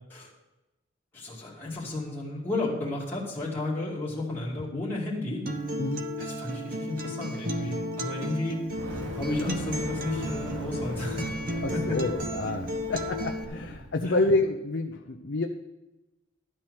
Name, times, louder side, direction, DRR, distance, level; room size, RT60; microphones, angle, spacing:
voice 1, 1.1-5.5 6.2-8.6 9.2-11.3 11.7-12.0 14.0-14.2, left 2 dB, 10° left, -7 dB, 2.3 m, -32 dB
Acoustic guitar, 5.5-13.4, equal, 45° right, 0.9 m, -34 dB
Fire, 8.6-13.9, right 1 dB, 80° right, 1.3 m, -39 dB
voice 2, 11.6-15.5, left 2 dB, 65° left, 4 dB, 0.6 m, -28 dB
12.0 x 4.4 x 7.8 m, 1.0 s
head